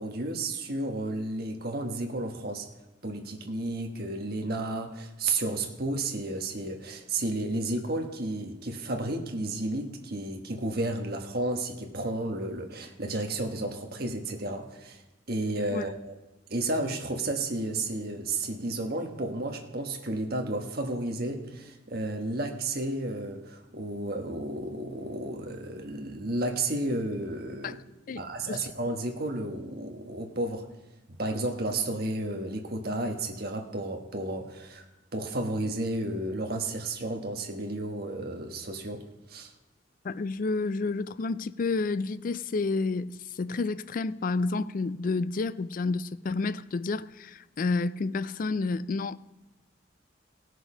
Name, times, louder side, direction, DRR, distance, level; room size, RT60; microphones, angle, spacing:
voice 1, 0.0-2.7 3.0-15.0 15.3-16.1 16.5-27.8 28.1-30.6 31.2-34.8 35.1-39.0 39.3-39.5, right 2 dB, 50° right, 1.3 m, -32 dB
voice 2, 40.0-49.2, left 3 dB, 45° left, 0.3 m, -30 dB
17.0 x 6.4 x 5.0 m
head